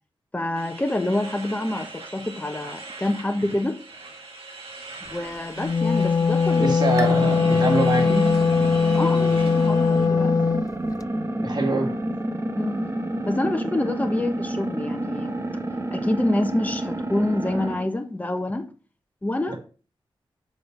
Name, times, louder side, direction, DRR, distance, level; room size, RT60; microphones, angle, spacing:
voice 1, 0.3-3.8 5.1-6.8 8.9-10.6 12.6-12.9 13.2-15.4 15.9-18.7 19.2-19.6, left 1 dB, 15° left, 1.1 m, -27 dB
sound 1, 0.5-10.1, right 3 dB, 90° right, 2.0 m, -41 dB
Wind instrument woodwind instrument, 5.5-10.7, left 5 dB, 40° left, 0.3 m, -20 dB
voice 2, 6.6-8.2 11.4-11.9 19.5-19.6, right 2 dB, 50° right, 2.3 m, -24 dB
sound 2, 7.0-17.9, right 1 dB, 30° right, 1.3 m, -29 dB
6.7 x 5.3 x 5.4 m
cardioid pair, 65°, 9 cm